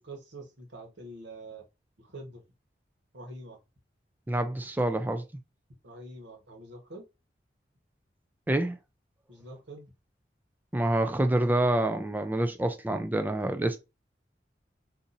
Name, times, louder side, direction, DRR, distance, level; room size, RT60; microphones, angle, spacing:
voice 1, 0.0-1.6 2.0-2.4 3.1-3.6 5.8-7.0 9.3-9.9, right 1 dB, 85° right, 1.2 m, -45 dB
voice 2, 4.3-5.2 8.5-8.8 10.7-13.8, right 1 dB, 10° right, 0.3 m, -27 dB
2.7 x 2.6 x 3.9 m
head